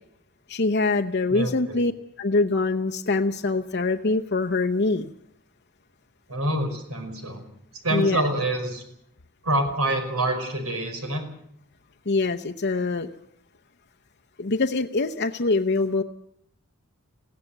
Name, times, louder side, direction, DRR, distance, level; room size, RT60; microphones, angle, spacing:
voice 1, 0.5-1.9 2.2-5.1 7.9-8.2 12.1-13.1 14.4-16.0, left 3 dB, 50° left, 4 dB, 0.8 m, -24 dB
voice 2, 1.3-1.8 6.3-7.5 7.8-8.8 9.4-11.2, right 1 dB, 85° right, 6 dB, 5.3 m, -26 dB
21.0 x 17.0 x 8.0 m, 0.74 s
head